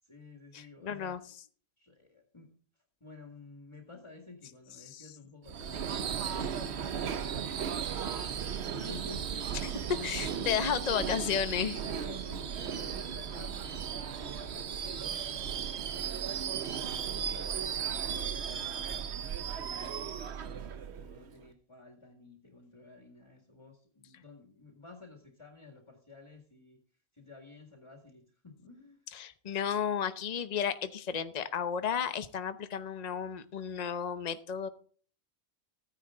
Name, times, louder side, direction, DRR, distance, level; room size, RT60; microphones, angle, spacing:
voice 1, 0.0-1.2 1.8-2.5 3.0-7.9 8.3-11.1 11.8-15.3 15.8-18.8 19.3-20.3 20.9-26.8 27.1-29.1, left 3 dB, 25° left, 2 dB, 2.1 m, -52 dB
voice 2, 0.5-1.2 4.9-5.1 9.6-9.7 10.0-11.8 29.1-34.7, left 8 dB, 40° left, 10 dB, 0.9 m, -33 dB
Subway metro underground / Screech, 5.5-21.4, right 8 dB, 70° right, 1.1 m, -36 dB
15.5 x 10.0 x 3.8 m, 0.44 s
omnidirectional pair, 1.1 m